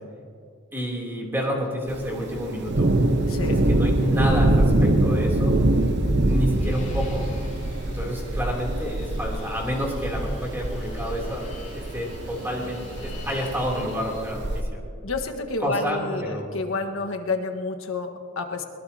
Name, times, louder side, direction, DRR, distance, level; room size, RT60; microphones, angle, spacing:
voice 1, 0.7-2.9 3.7-5.6 6.2-7.3 7.8-11.4 11.7-14.8 15.6-16.4, equal, 10° right, -2 dB, 3.2 m, -29 dB
Thunder, 1.9-14.6, right 1 dB, 55° right, 0.9 m, -24 dB
voice 2, 3.3-3.6 15.0-18.6, left 3 dB, 75° left, 5 dB, 1.5 m, -29 dB
Fixed-wing aircraft airplane, 6.6-14.4, left 2 dB, 35° left, 4.6 m, -45 dB
21.5 x 21.5 x 2.9 m, 2.4 s
head